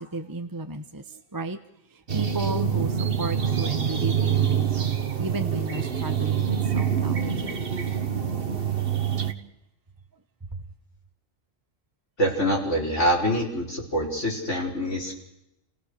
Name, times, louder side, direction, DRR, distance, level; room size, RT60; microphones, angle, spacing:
voice 1, 0.0-1.6 1.9-4.7 5.2-7.2 10.5-10.6, right 2 dB, 20° right, 7 dB, 0.9 m, -33 dB
sound 1, 2.1-9.3, right 8 dB, 45° right, 1.5 m, -25 dB
voice 2, 12.2-15.2, equal, 60° left, -2 dB, 5.8 m, -25 dB
30.0 x 17.0 x 6.7 m, 0.86 s
omnidirectional pair, 1.4 m